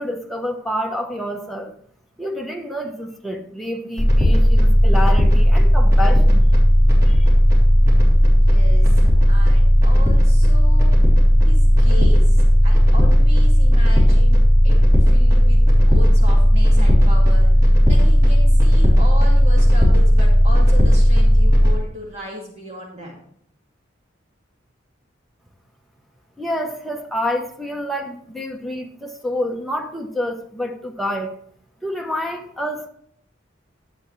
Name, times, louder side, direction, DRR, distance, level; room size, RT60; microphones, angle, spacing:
voice 1, 0.0-1.7 2.2-6.4 7.1-7.3 26.4-31.4 31.8-32.9, left 1 dB, ahead, 1.0 m, -28 dB
sound 1, 4.0-21.7, equal, 20° right, 3.3 m, -13 dB
voice 2, 8.3-10.9 11.5-17.5 17.8-23.2, equal, 35° right, 2.3 m, -36 dB
11.0 x 7.7 x 3.3 m
head